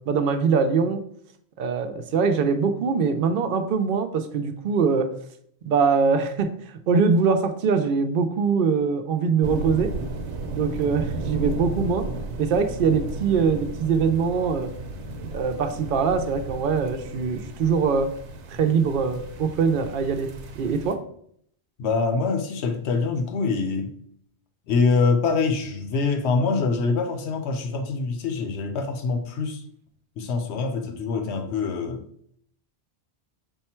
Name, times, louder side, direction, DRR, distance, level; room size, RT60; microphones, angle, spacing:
voice 1, 0.1-1.0 1.6-5.1 5.6-6.5 6.9-9.9 10.5-12.0 12.4-14.7 15.3-18.1 18.5-20.3 20.6-21.0, right 5 dB, 60° right, 0.6 m, -22 dB
sound 1, 9.4-21.0, right 2 dB, 80° right, 0.9 m, -34 dB
voice 2, 21.8-24.0 24.7-29.6 30.2-32.0, left 4 dB, 75° left, 0.9 m, -24 dB
5.4 x 2.2 x 4.3 m
omnidirectional pair, 1.2 m